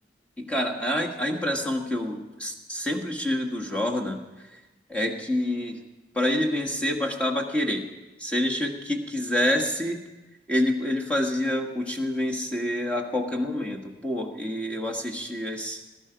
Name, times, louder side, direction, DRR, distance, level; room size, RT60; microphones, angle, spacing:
voice 1, 0.4-4.2 4.5-4.6 4.9-5.8 6.1-7.8 8.2-10.0 10.5-15.8, left 1 dB, 5° left, -1 dB, 1.6 m, -27 dB
19.5 x 12.0 x 5.1 m, 1.1 s
head